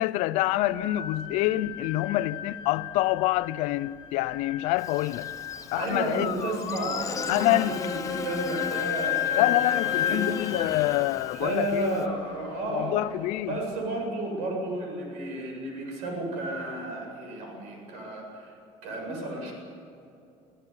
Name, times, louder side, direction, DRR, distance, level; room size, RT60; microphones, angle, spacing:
voice 1, 0.0-5.3 5.7-6.3 7.3-7.8 9.4-11.9 12.7-13.6, left 16 dB, 80° left, 0.7 m, -26 dB
sound 1, 0.6-13.6, left 10 dB, 45° left, 1.7 m, -34 dB
Buzz, 4.8-12.1, left 6 dB, 25° left, 1.1 m, -38 dB
voice 2, 5.7-10.3 11.3-13.0 13.5-18.6 18.8-19.5, right 1 dB, 85° right, 7.9 m, -32 dB
26.0 x 15.0 x 9.9 m
cardioid pair, 125°, 12 cm